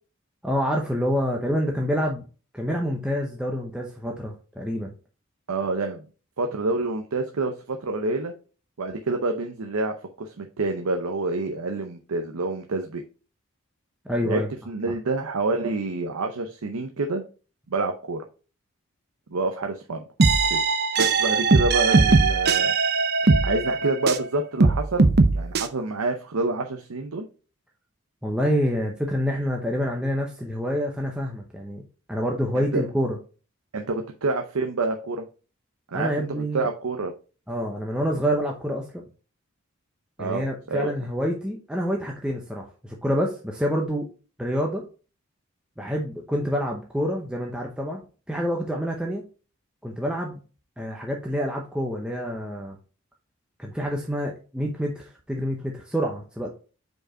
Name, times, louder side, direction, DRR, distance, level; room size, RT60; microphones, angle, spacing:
voice 1, 0.4-2.2 2.5-4.9 14.1-14.5 28.2-31.8 32.1-33.2 35.9-36.7 37.5-38.8 40.2-44.1 44.4-44.8 45.8-48.0 48.3-49.2 49.8-50.4 50.8-52.8 53.6-56.5, equal, 5° right, 0 dB, 0.7 m, -27 dB
voice 2, 5.5-6.0 6.4-8.3 8.8-13.0 14.2-17.2 17.7-18.2 19.3-20.0 20.5-20.6 21.0-22.7 23.4-27.2 32.7-32.8 33.7-35.2 35.9-37.1 40.2-40.9, right 3 dB, 90° right, 4 dB, 0.7 m, -27 dB
sound 1, 20.2-24.3 24.6-25.7, right 4 dB, 50° right, 0.6 m, -20 dB
5.3 x 4.7 x 4.3 m, 0.36 s
head